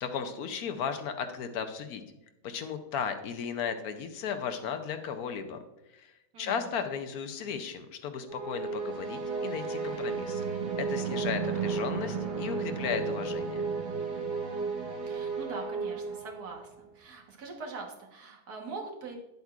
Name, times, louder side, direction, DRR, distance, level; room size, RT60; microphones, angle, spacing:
voice 1, 0.0-2.0 2.4-5.6 5.9-10.4 10.8-13.7, left 7 dB, 70° left, 7 dB, 1.1 m, -35 dB
voice 2, 6.3-6.7 14.5-19.2, right 4 dB, 70° right, 1 dB, 1.8 m, -43 dB
sound 1, 8.3-16.7, right 5 dB, 85° right, 1.9 m, -33 dB
9.6 x 8.0 x 2.4 m, 0.92 s
omnidirectional pair, 1.8 m